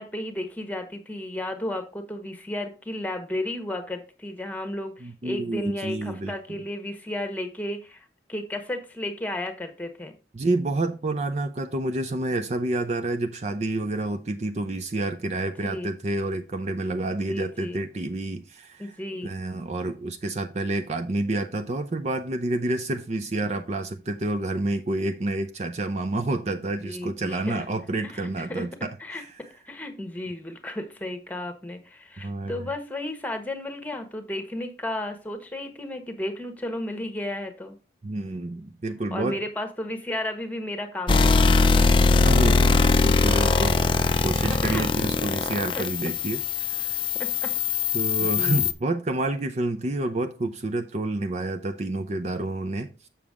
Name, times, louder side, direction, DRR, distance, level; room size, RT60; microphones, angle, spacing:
voice 1, 0.0-10.1 15.4-15.9 17.2-17.8 18.8-19.3 26.8-27.6 28.0-28.7 29.0-29.2 29.5-37.8 39.1-41.9 44.4-44.8 45.8-45.9 47.2-47.5 48.2-48.7, left 1 dB, 10° left, 1.2 m, -33 dB
voice 2, 5.0-6.6 10.3-18.9 19.2-29.3 32.2-32.6 38.0-39.4 42.2-43.8 44.2-46.4 46.8-47.0 47.9-53.1, right 2 dB, 40° right, 0.5 m, -29 dB
sound 1, 41.1-48.7, left 4 dB, 30° left, 0.5 m, -21 dB
7.1 x 7.0 x 3.6 m
head